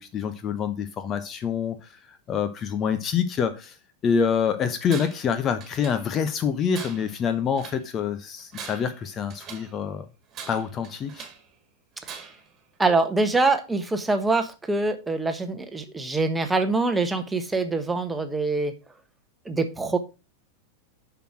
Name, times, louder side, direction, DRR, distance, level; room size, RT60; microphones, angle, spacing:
voice 1, 0.0-3.8 4.0-10.0 10.5-11.3, left 7 dB, 30° left, 0.8 m, -26 dB
Tools, 4.9-5.3 5.6-6.3 6.7-7.9 8.4-9.8 10.3-11.5 12.0-12.5, right 7 dB, 30° right, 2.3 m, -42 dB
voice 2, 12.8-18.7 19.4-20.0, right 3 dB, 10° right, 1.3 m, -24 dB
6.8 x 6.1 x 6.2 m
figure-of-eight pair, 90°, 0 cm